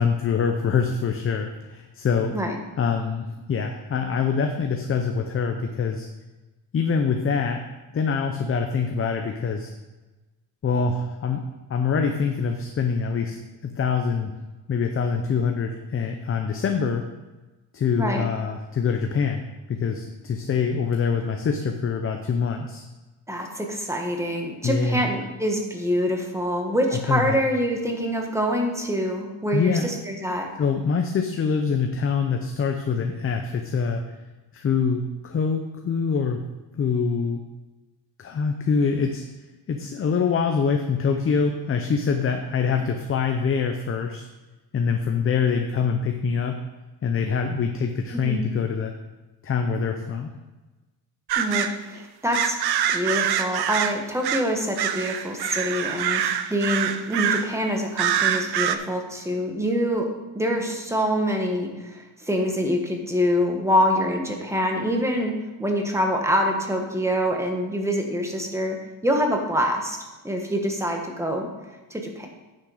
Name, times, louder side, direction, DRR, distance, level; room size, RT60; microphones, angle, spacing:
voice 1, 0.0-2.3 2.8-6.1 6.7-7.7 7.9-9.7 10.6-11.4 11.7-14.3 14.7-17.1 17.7-19.4 19.7-22.8 24.6-25.0 26.9-27.4 29.5-29.9 30.6-34.0 34.5-36.4 36.7-37.4 38.2-39.2 39.7-44.2 44.7-46.6 47.0-48.9 49.4-50.3, left 5 dB, 30° left, 4 dB, 0.6 m, -24 dB
voice 2, 23.3-30.5 48.1-48.4 51.4-52.6 52.9-60.0 60.3-65.3 65.6-68.8 69.0-70.0 70.2-71.5 71.9-72.3, equal, 5° right, 2 dB, 1.4 m, -25 dB
sound 1, 51.3-51.8 52.3-54.5 54.8-57.5 58.0-58.8, right 9 dB, 60° right, 0.7 m, -25 dB
9.7 x 6.6 x 4.9 m, 1.2 s
cardioid pair, 145°, 44 cm